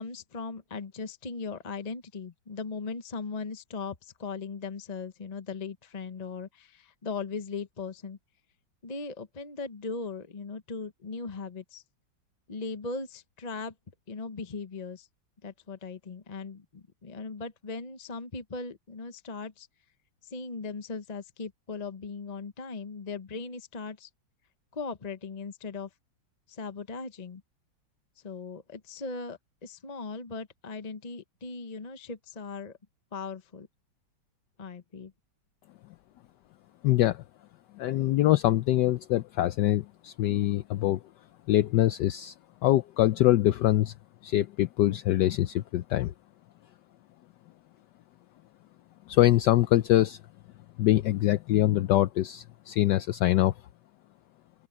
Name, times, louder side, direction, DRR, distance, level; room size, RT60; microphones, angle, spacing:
voice 1, 0.0-8.2 8.8-11.8 12.5-13.7 14.1-15.1 15.4-19.7 20.2-24.1 24.7-25.9 26.5-27.4 28.2-32.8 33.1-33.7 34.6-35.1, left 4 dB, 35° left, 0.7 m, -38 dB
voice 2, 36.8-37.2 37.8-41.0 41.5-42.3 42.6-43.9 44.2-46.1 49.1-50.2 50.8-53.5, left 14 dB, 70° left, 1.1 m, -24 dB
open air
omnidirectional pair, 2.1 m